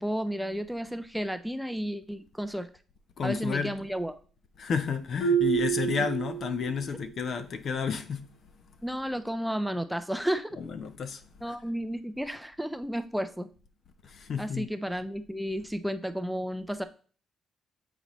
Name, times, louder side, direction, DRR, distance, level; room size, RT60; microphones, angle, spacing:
voice 1, 0.0-2.7 3.2-4.2 8.8-10.6 11.4-13.5 14.4-16.8, equal, 5° right, 0.5 m, -32 dB
voice 2, 3.2-3.7 4.6-8.3 10.6-11.2 11.5-11.6 14.0-14.7, left 6 dB, 55° left, 0.8 m, -31 dB
Marimba xylophone, 5.2-6.9, right 8 dB, 90° left, 2.5 m, -28 dB
8.0 x 4.0 x 3.0 m
cardioid pair, 90°, 0 cm